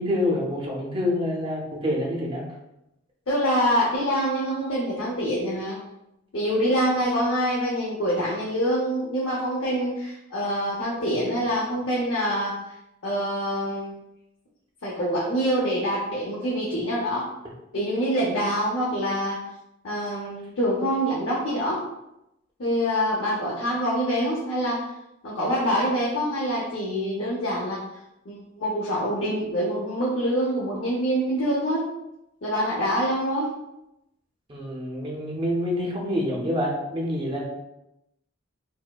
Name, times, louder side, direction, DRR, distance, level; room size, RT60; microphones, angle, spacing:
voice 1, 0.0-2.4 34.5-37.4, left 1 dB, 25° right, -2 dB, 0.6 m, -27 dB
voice 2, 3.3-5.8 6.3-12.5 13.0-14.0 14.8-17.2 17.7-19.4 19.8-21.8 22.6-24.9 25.2-27.8 28.3-31.9 32.4-33.5, equal, 75° left, -5 dB, 0.7 m, -25 dB
4.4 x 2.1 x 2.3 m, 0.88 s
head